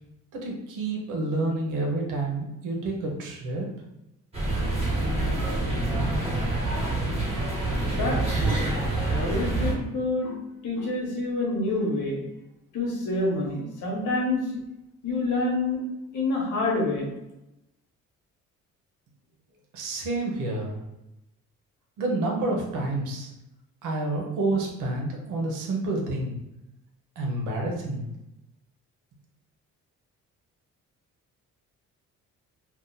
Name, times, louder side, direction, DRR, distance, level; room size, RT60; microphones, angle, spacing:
voice 1, 0.3-3.7 19.7-20.8 22.0-23.3 23.8-26.3 27.2-28.1, right 2 dB, 90° right, 0 dB, 0.9 m, -29 dB
sound 1, 4.3-9.7, right 2 dB, 20° right, 1.5 m, -26 dB
voice 2, 7.9-8.7 9.1-10.4 10.6-12.2 12.7-14.4 15.0-15.8 16.1-17.1, left 2 dB, 85° left, -2 dB, 1.1 m, -27 dB
2.8 x 2.4 x 3.8 m, 0.89 s
cardioid pair, 90°, 30 cm